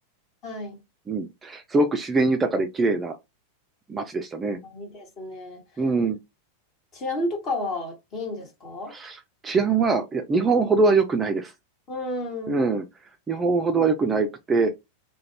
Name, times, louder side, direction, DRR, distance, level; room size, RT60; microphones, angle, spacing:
voice 1, 0.4-0.8 4.6-5.6 6.9-8.9 11.9-12.6, left 2 dB, 35° left, 1.3 m, -32 dB
voice 2, 1.1-3.2 3.9-4.6 5.8-6.2 8.9-11.5 12.5-12.8 13.3-14.7, right 3 dB, 15° right, 0.4 m, -23 dB
2.4 x 2.1 x 3.2 m
figure-of-eight pair, 90°, 0 cm